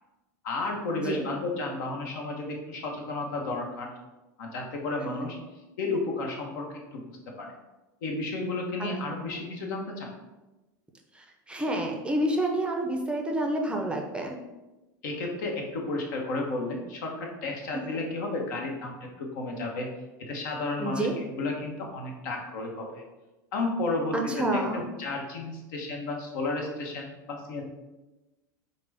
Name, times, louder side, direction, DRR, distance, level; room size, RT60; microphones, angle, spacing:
voice 1, 0.4-3.9 4.4-5.4 5.8-7.1 7.4-7.5 8.0-10.1 15.0-19.9 20.2-23.0 23.5-27.6, left 2 dB, 70° left, 1 dB, 0.9 m, -32 dB
voice 2, 11.1-14.4 17.7-18.0 20.8-21.2 24.1-24.9, right 1 dB, 10° right, 2 dB, 0.5 m, -29 dB
4.9 x 2.1 x 3.4 m, 1.1 s
hypercardioid pair, 105°, 11 cm